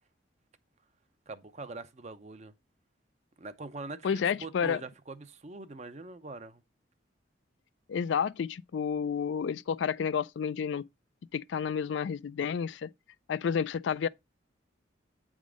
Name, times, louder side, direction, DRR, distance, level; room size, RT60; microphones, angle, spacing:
voice 1, 1.3-2.5 3.4-6.6, right 3 dB, 35° right, 0.6 m, -43 dB
voice 2, 4.0-4.8 7.9-10.8 11.3-12.9 13.3-14.1, left 7 dB, 70° left, 0.3 m, -30 dB
8.3 x 3.7 x 4.9 m
head